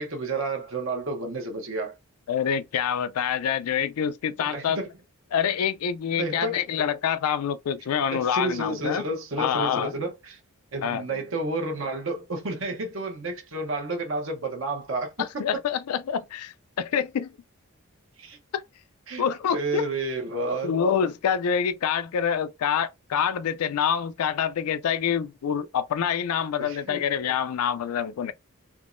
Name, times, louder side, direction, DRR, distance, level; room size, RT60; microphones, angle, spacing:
voice 1, 0.0-1.9 4.5-4.9 6.2-6.6 8.1-10.4 10.7-15.3 18.2-18.4 19.1-19.2 19.5-20.8 26.6-27.0, right 2 dB, 60° right, 0.8 m, -30 dB
voice 2, 2.3-4.8 5.3-9.0 9.4-9.9 10.8-11.0 15.2-17.3 18.5-18.6 19.2-19.8 20.6-28.3, left 8 dB, 85° left, 0.4 m, -26 dB
3.6 x 2.9 x 2.5 m
head